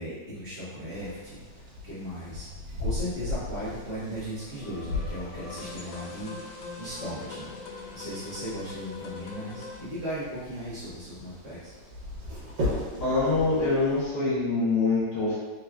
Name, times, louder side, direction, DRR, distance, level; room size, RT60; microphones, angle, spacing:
voice 1, 0.0-2.5 2.8-11.7, equal, 45° right, -11 dB, 1.5 m, -37 dB
sound 1, 0.9-14.1, left 2 dB, 70° right, 1.5 m, -38 dB
sound 2, 4.2-9.8, left 3 dB, 85° left, 1.3 m, -42 dB
voice 2, 13.0-15.4, left 3 dB, 60° left, -9 dB, 1.7 m, -25 dB
3.5 x 3.0 x 2.3 m, 1.3 s
omnidirectional pair, 2.0 m